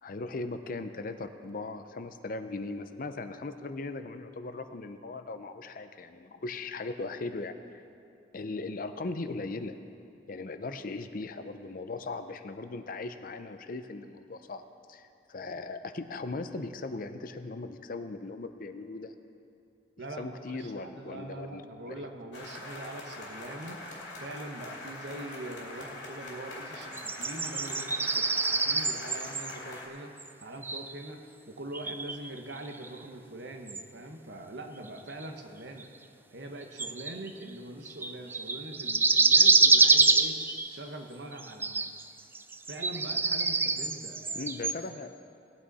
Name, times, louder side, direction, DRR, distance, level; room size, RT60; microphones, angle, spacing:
voice 1, 0.0-7.6 8.3-9.8 10.3-19.1 20.2-22.1 44.3-45.1, left 3 dB, 50° left, 9 dB, 0.6 m, -38 dB
voice 2, 20.0-23.8 24.2-30.1 30.4-35.9 36.3-40.4 40.7-42.0 42.7-44.5, right 1 dB, 80° right, 4 dB, 1.1 m, -43 dB
sound 1, 22.3-29.9, left 2 dB, 80° left, 2.5 m, -43 dB
sound 2, 26.9-29.5 30.2-30.3 30.6-31.1 31.7-33.0 33.7-33.8 35.2-35.3 35.8-35.9 36.8-37.4 37.9-40.8 41.3-42.0 42.4-44.8, right 3 dB, 10° right, 0.3 m, -26 dB
18.0 x 9.0 x 4.1 m, 2.6 s
head